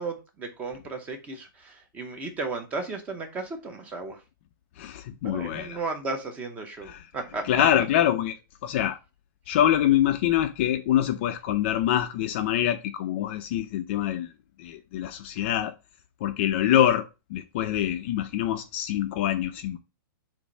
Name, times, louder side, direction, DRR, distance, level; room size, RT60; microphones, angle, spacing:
voice 1, 0.0-4.2 5.2-7.6, right 3 dB, 10° right, 0.7 m, -34 dB
voice 2, 4.8-5.8 6.8-7.0 7.4-8.4 8.6-9.0 9.5-14.3 14.6-15.7 16.2-17.1 17.3-19.8, left 11 dB, 30° left, 0.5 m, -25 dB
7.0 x 2.6 x 5.3 m
hypercardioid pair, 175°, 12 cm